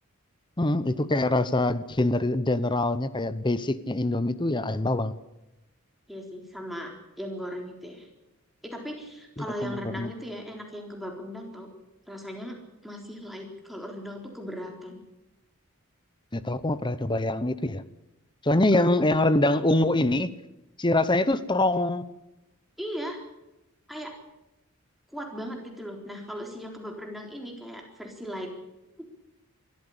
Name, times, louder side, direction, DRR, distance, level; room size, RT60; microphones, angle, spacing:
voice 1, 0.6-5.2 9.4-10.1 16.3-17.8 18.4-20.3 20.8-22.0, left 2 dB, 20° left, 15 dB, 0.9 m, -24 dB
voice 2, 6.1-8.1 8.6-11.7 12.1-12.6 12.8-15.0 18.7-19.2 22.8-23.2 23.9-24.1 25.1-28.5, equal, ahead, 1 dB, 3.9 m, -38 dB
23.0 x 14.0 x 8.6 m, 0.93 s
head